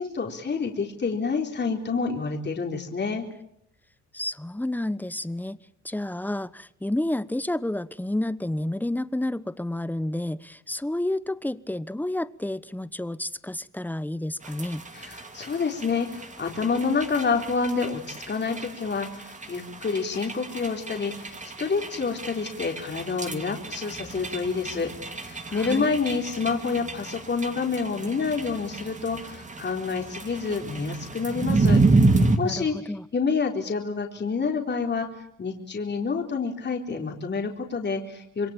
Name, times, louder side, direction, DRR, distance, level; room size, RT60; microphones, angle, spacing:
voice 1, 0.0-3.3 14.9-31.8 32.4-35.1 35.4-38.5, left 5 dB, 35° left, 4.0 m, -28 dB
voice 2, 4.1-5.6 5.8-14.8 25.5-25.9 32.4-33.0, left 1 dB, 5° left, 1.1 m, -30 dB
sound 1, 14.4-32.4, right 3 dB, 25° right, 3.0 m, -29 dB
27.0 x 22.0 x 9.0 m
cardioid pair, 90°, 30 cm